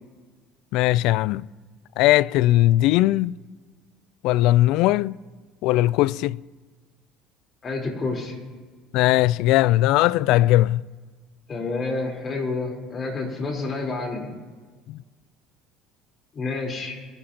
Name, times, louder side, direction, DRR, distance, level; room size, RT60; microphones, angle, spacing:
voice 1, 0.7-1.4 2.0-3.4 4.2-5.1 5.6-6.4 8.9-10.8 14.9-15.0, left 16 dB, 70° left, 0.3 m, -19 dB
voice 2, 7.6-8.4 11.5-14.3 16.3-17.0, left 3 dB, 35° left, 3.8 m, -29 dB
23.0 x 10.5 x 2.9 m
supercardioid pair, 85°, 0 cm